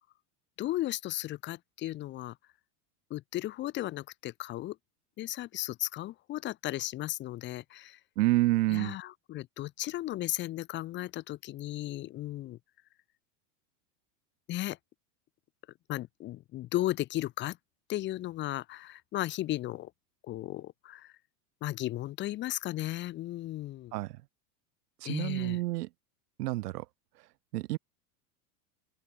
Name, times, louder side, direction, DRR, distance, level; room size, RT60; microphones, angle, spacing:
voice 1, 0.6-2.4 3.1-4.8 5.2-8.0 8.7-12.6 14.5-14.8 15.9-17.6 17.9-19.9 20.3-21.1 21.6-23.9 25.0-25.6, left 15 dB, 25° left, 1.3 m, -35 dB
voice 2, 8.2-8.9 23.9-24.1 25.0-25.9 26.4-26.8 27.5-27.8, right 18 dB, 80° right, 1.3 m, -28 dB
open air
supercardioid pair, 175°, 46 cm